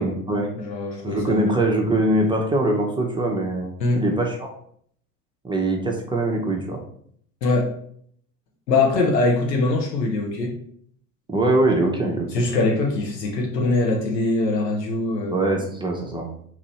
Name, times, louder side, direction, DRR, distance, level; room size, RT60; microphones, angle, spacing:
voice 1, 0.0-0.5 1.0-4.5 5.4-6.8 11.3-12.3 15.3-16.3, right 1 dB, 10° right, 0 dB, 0.6 m, -22 dB
voice 2, 0.5-1.5 3.8-4.0 7.4-7.7 8.7-10.5 12.3-15.4, left 2 dB, 90° left, 0 dB, 1.0 m, -22 dB
3.1 x 2.6 x 4.2 m, 0.63 s
hypercardioid pair, 85°, 48 cm